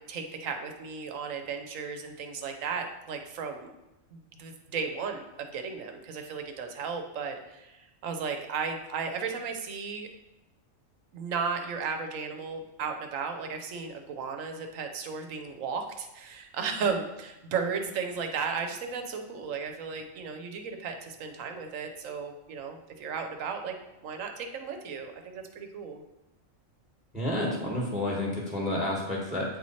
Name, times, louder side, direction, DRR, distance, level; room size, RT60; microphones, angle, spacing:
voice 1, 0.0-3.7 4.1-10.1 11.1-23.8 24.0-26.0, right 5 dB, 75° right, 5 dB, 1.1 m, -35 dB
voice 2, 27.1-29.4, left 1 dB, 5° right, -2 dB, 1.0 m, -30 dB
8.7 x 3.1 x 4.2 m, 0.99 s
omnidirectional pair, 1.4 m